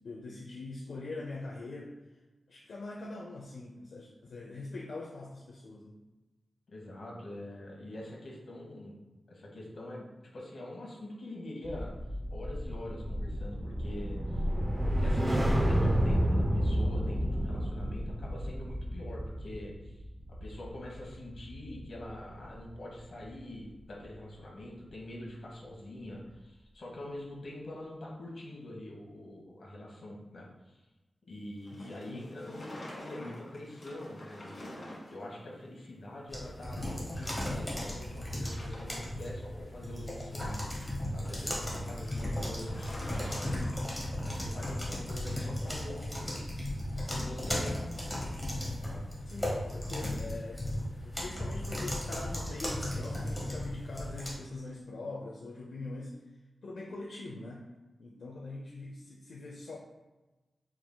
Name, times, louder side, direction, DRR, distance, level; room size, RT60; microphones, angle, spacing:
voice 1, 0.0-1.9 2.5-5.9 31.7-32.3 49.3-50.6 51.0-56.2 56.6-57.7 58.0-59.8, left 2 dB, 75° left, -3 dB, 0.5 m, -43 dB
voice 2, 6.7-9.0 9.3-10.1 10.3-11.9 12.3-14.5 15.0-20.0 20.4-30.8 31.3-34.8 35.1-40.7 41.1-43.6 44.2-46.5 47.1-48.4 48.9-49.0, left 1 dB, 60° left, -3 dB, 1.1 m, -44 dB
sound 1, 11.6-22.1 22.4-22.7, equal, 20° right, 0.4 m, -31 dB
sound 2, 31.6-35.3 35.6-35.7 36.5-36.6 36.8-37.9 38.1-39.1 40.4-44.2, left 1 dB, 40° left, 1.2 m, -48 dB
sound 3, 36.3-54.3, left 1 dB, 5° left, 0.9 m, -36 dB
4.6 x 3.5 x 2.2 m, 1.1 s
wide cardioid pair, 160°, 0 cm